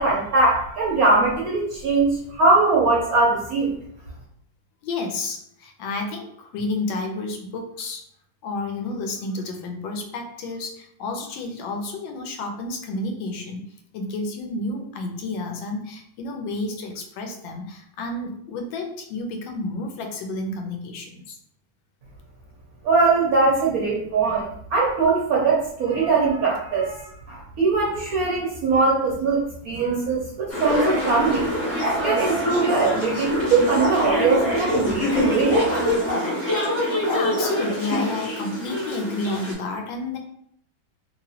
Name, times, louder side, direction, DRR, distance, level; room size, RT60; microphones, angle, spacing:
voice 1, 0.0-3.7 22.8-31.5 32.0-35.6, right 3 dB, 65° right, -4 dB, 0.9 m, -21 dB
voice 2, 4.8-8.0 8.4-13.6 13.9-21.4 36.6-40.2, left 2 dB, 80° left, 3 dB, 1.3 m, -31 dB
sound 1, 30.5-39.5, left 1 dB, 40° left, 0.4 m, -25 dB
3.0 x 2.9 x 2.7 m, 0.69 s
omnidirectional pair, 2.1 m